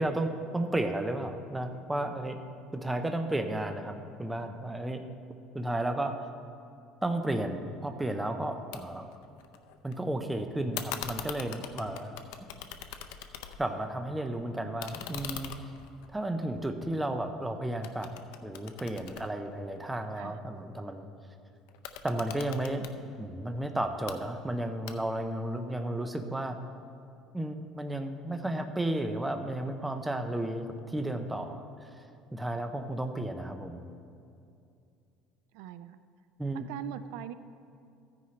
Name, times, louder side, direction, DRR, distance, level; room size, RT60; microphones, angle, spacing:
voice 1, 0.0-2.4 2.7-5.0 5.5-6.2 7.0-9.1 9.8-12.2 13.6-15.7 16.1-18.1 18.4-21.1 22.0-22.9 23.2-26.6 27.3-32.1 32.3-33.8 36.4-36.7, right 1 dB, 5° right, 6 dB, 0.5 m, -33 dB
sound 1, 8.7-8.8 9.1-9.9 10.7-13.8 14.2-17.4 17.8-20.1 21.7-23.0 23.8-24.2 24.9-25.3, left 10 dB, 85° left, 0.6 m, -42 dB
voice 2, 35.5-36.0 36.7-37.3, right 11 dB, 75° right, 12 dB, 0.4 m, -41 dB
14.0 x 9.6 x 3.2 m, 2.5 s
cardioid pair, 160°, 0 cm